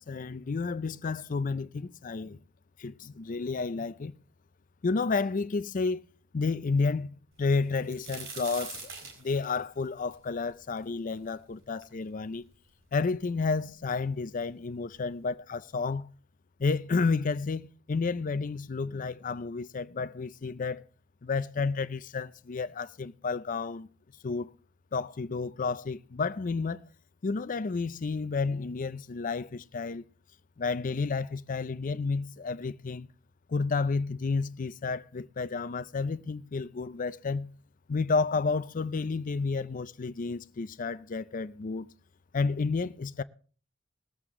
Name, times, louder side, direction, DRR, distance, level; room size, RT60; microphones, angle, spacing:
voice 1, 0.0-2.4 2.8-4.1 4.8-6.0 6.3-7.1 7.4-8.9 9.2-12.4 12.9-16.1 16.6-20.8 21.2-23.9 24.2-24.5 24.9-26.8 27.2-30.0 30.6-33.1 33.5-37.5 37.9-41.9 42.3-43.2, left 4 dB, 40° left, 0.5 m, -31 dB
sound 1, 7.5-11.3 11.8-11.9 12.7-12.8 13.0-13.7 14.6-14.7 15.1-15.3, right 5 dB, 65° right, 4.5 m, -44 dB
20.5 x 8.0 x 3.6 m
head